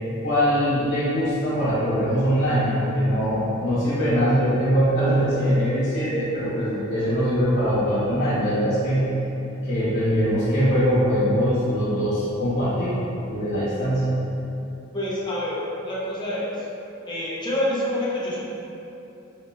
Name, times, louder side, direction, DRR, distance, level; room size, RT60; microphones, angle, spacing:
voice 1, 0.2-9.1 9.6-13.0 13.3-14.1, equal, 55° left, -10 dB, 0.8 m, -22 dB
voice 2, 14.9-16.7 17.1-18.4, left 1 dB, 20° left, -5 dB, 0.4 m, -27 dB
2.8 x 2.1 x 3.3 m, 2.9 s
head